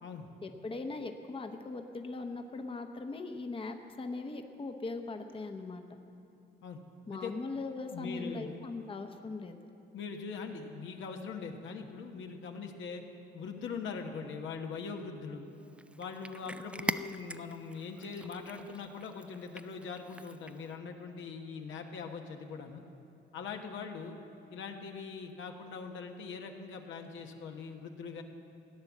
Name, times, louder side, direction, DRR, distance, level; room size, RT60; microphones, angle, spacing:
voice 1, 0.4-5.8 7.1-9.7, left 3 dB, 25° left, 5 dB, 0.9 m, -40 dB
voice 2, 7.9-8.6 9.9-13.0 13.3-15.5 16.0-22.8 23.3-24.2 24.5-28.2, left 5 dB, 75° left, 3 dB, 1.3 m, -42 dB
Cat, 15.6-20.8, right 1 dB, 5° right, 0.4 m, -43 dB
16.0 x 9.6 x 7.3 m, 2.7 s
cardioid pair, 90°, 20 cm